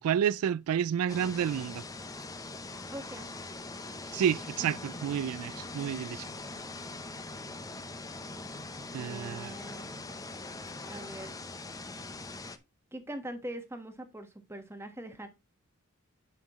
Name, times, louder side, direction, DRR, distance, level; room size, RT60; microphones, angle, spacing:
voice 1, 0.0-1.8 4.1-6.3 8.9-9.5, right 9 dB, 90° right, 0.3 m, -30 dB
sound 1, 1.1-12.6, left 3 dB, 15° left, 0.6 m, -42 dB
voice 2, 2.9-3.3 9.0-9.9 10.9-11.4 12.9-15.3, right 1 dB, 10° right, 1.3 m, -42 dB
sound 2, 4.2-12.6, left 1 dB, 30° left, 1.2 m, -52 dB
10.5 x 5.7 x 3.0 m
head